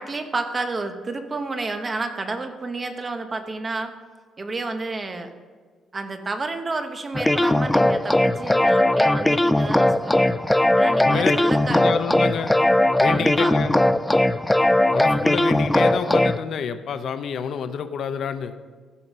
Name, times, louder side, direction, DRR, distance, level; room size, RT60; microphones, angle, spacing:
voice 1, 0.0-3.9 4.4-5.3 5.9-10.4 10.7-11.8 13.1-13.6, right 3 dB, 25° right, 7 dB, 0.9 m, -30 dB
sound 1, 7.1-16.4, left 1 dB, 5° left, 0.3 m, -19 dB
voice 2, 11.0-11.3 11.6-12.5 13.0-13.8 14.9-18.5, left 7 dB, 55° left, 10 dB, 0.7 m, -28 dB
15.5 x 5.8 x 5.3 m, 1.5 s
cardioid pair, 145°, 0 cm